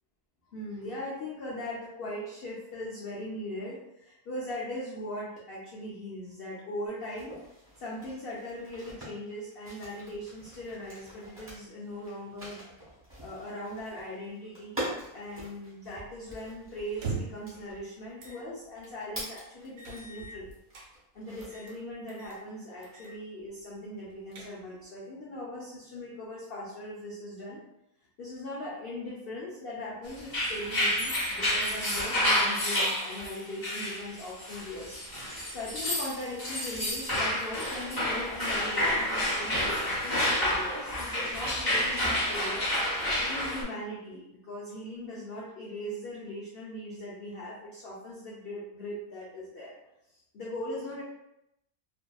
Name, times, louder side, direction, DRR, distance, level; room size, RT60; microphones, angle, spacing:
voice 1, 0.5-7.3 7.8-12.6 13.2-20.5 21.1-27.6 28.2-42.7 43.2-49.8 50.1-51.0, left 1 dB, 70° left, -6 dB, 0.5 m, -40 dB
sound 1, 6.9-20.3 20.7-21.7, right 1 dB, 10° right, 0.8 m, -44 dB
sound 2, 16.9-17.5 18.2-18.4 18.8-18.9 19.8-20.9 21.4-21.8 22.1-22.4 22.8-23.2 23.5-23.6 24.1-24.8, right 4 dB, 65° right, 1.1 m, -40 dB
sound 3, 30.2-43.6, left 1 dB, 20° left, 0.6 m, -29 dB
2.7 x 2.5 x 2.2 m, 0.84 s
omnidirectional pair, 1.7 m